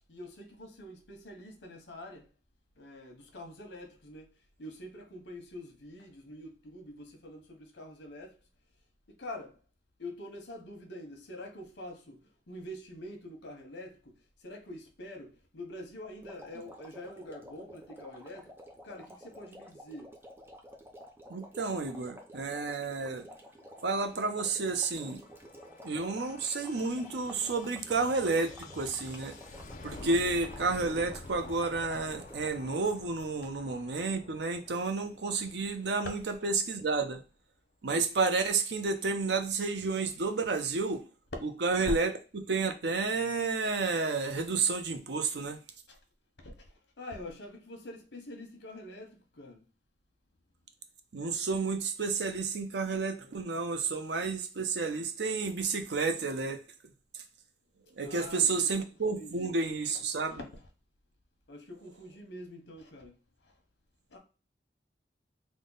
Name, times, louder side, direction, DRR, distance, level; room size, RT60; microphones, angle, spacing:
voice 1, 0.1-2.3 2.8-4.3 4.6-8.4 9.2-9.6 10.0-14.1 14.4-20.2 33.4-33.5 45.9-46.0 46.4-49.6 58.0-58.8 59.2-59.7 60.1-60.4 61.5-63.2 63.4-63.5 64.1-64.2, left 1 dB, 85° left, 1.0 m, -46 dB
sound 1, 16.2-32.7, equal, 15° right, 0.5 m, -51 dB
voice 2, 21.3-23.3 23.8-25.2 25.8-29.3 29.8-37.2 37.8-41.0 41.6-45.6 51.1-56.6 58.0-60.4, right 4 dB, 75° right, 0.6 m, -31 dB
sound 2, 23.5-36.9, left 2 dB, 45° left, 0.5 m, -50 dB
3.5 x 2.2 x 3.8 m
head